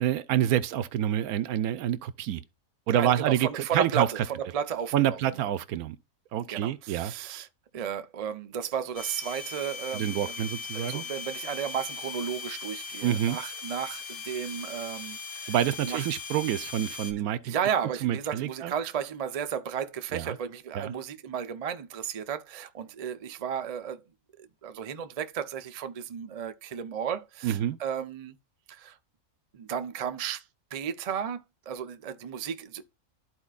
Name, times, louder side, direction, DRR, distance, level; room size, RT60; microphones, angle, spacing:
voice 1, 0.0-2.4 2.9-4.1 4.9-6.0 6.3-7.1 9.9-11.0 13.0-13.4 15.5-17.5 18.0-18.7 20.1-20.4 20.7-20.9 27.4-27.8, right 11 dB, 80° right, 1.1 m, -27 dB
voice 2, 2.9-5.5 6.5-7.5 7.7-15.5 15.8-16.1 17.2-24.0 24.4-28.4 28.7-29.0 29.5-30.4 30.7-32.8, right 8 dB, 55° right, 0.4 m, -34 dB
sound 1, 8.9-17.1, left 5 dB, 30° left, 0.7 m, -39 dB
12.5 x 4.4 x 2.4 m
omnidirectional pair, 1.5 m